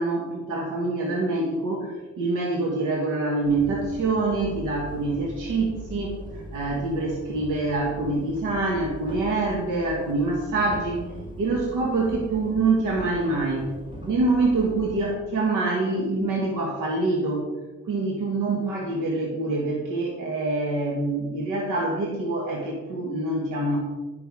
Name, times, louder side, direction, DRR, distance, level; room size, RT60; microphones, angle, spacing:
voice 1, 0.0-11.0 11.4-13.7 14.1-17.5 17.9-23.8, right 2 dB, 90° right, 0 dB, 1.5 m, -25 dB
sound 1, 3.4-15.1, right 1 dB, 15° right, 2.2 m, -40 dB
10.5 x 5.7 x 4.7 m, 1.2 s
cardioid pair, 90°, 30 cm